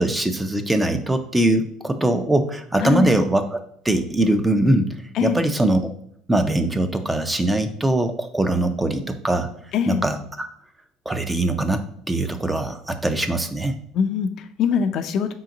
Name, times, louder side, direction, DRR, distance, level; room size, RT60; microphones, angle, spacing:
voice 1, 0.0-3.6 3.8-5.9 6.3-9.5 9.9-10.5 11.1-13.8, right 1 dB, 10° right, 8 dB, 0.4 m, -22 dB
voice 2, 2.8-3.1 5.1-5.4 9.7-10.0 13.9-15.3, left 7 dB, 55° left, 7 dB, 0.4 m, -22 dB
5.0 x 3.8 x 2.7 m, 0.67 s
cardioid pair, 125°, 0 cm